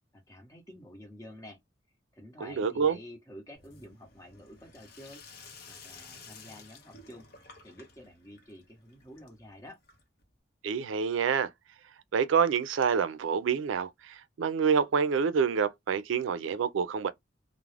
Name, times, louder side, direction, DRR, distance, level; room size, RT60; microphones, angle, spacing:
voice 1, 0.1-1.6 2.1-5.2 5.7-9.8, left 1 dB, 15° left, 0.9 m, -49 dB
voice 2, 2.4-3.0 10.6-11.5 12.1-17.1, right 6 dB, 90° right, 0.4 m, -27 dB
Sink (filling or washing), 3.5-10.3, left 4 dB, 55° left, 0.7 m, -53 dB
2.3 x 2.0 x 3.1 m
head